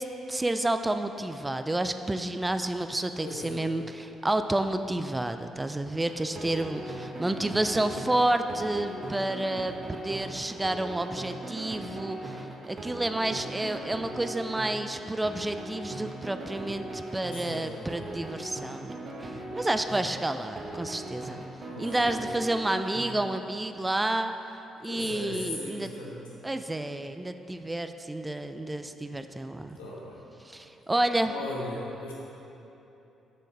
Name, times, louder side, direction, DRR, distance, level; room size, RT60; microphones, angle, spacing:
voice 1, 0.0-18.9 19.2-21.4 21.8-24.3 24.8-25.9 26.4-29.8 30.4-31.3, right 1 dB, 15° right, 8 dB, 0.4 m, -30 dB
voice 2, 3.2-3.7 7.3-7.6 10.2-10.3 17.3-18.1 21.7-22.1 24.8-26.2 29.7-30.2 31.3-32.1, left 2 dB, 85° left, -5 dB, 1.2 m, -38 dB
sound 1, 6.0-23.1, right 2 dB, 45° right, 1.3 m, -39 dB
6.5 x 6.4 x 4.8 m, 3.0 s
hypercardioid pair, 45°, 0 cm